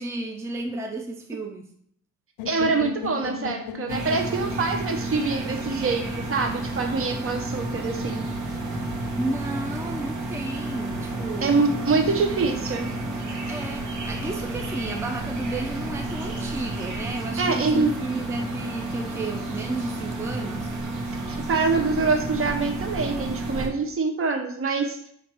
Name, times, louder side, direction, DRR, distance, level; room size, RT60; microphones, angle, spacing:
voice 1, 0.0-1.6 9.1-11.5 13.5-20.8, right 2 dB, 10° right, 3 dB, 0.5 m, -33 dB
sound 1, 2.4-6.3, left 8 dB, 90° left, 0.5 m, -37 dB
voice 2, 2.5-6.0 6.3-8.2 11.4-12.9 17.4-17.9 21.3-25.0, right 4 dB, 45° right, 4 dB, 0.8 m, -25 dB
sound 2, 3.9-23.7, right 2 dB, 70° right, 1.1 m, -31 dB
4.4 x 2.6 x 4.6 m, 0.66 s
cardioid pair, 90°, 30 cm